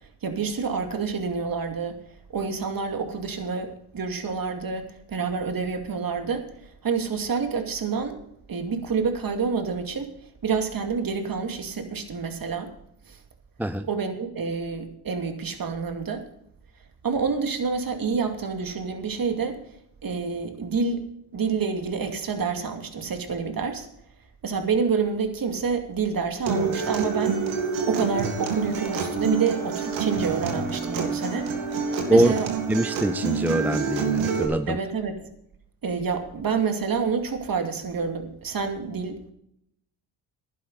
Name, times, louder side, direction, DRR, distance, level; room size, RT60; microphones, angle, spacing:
voice 1, 0.0-2.0 2.3-8.2 8.5-10.1 10.4-12.7 13.1-13.2 13.8-16.3 17.0-19.6 20.0-21.0 21.3-23.9 24.4-27.4 27.9-31.5 32.1-32.5 34.7-35.2 35.8-39.3, right 5 dB, 45° right, 2.4 m, -28 dB
Acoustic guitar, 26.5-34.4, right 5 dB, 80° right, 2.3 m, -27 dB
voice 2, 32.7-34.8, right 1 dB, 5° right, 0.4 m, -23 dB
11.5 x 10.0 x 5.6 m
supercardioid pair, 55°, 47 cm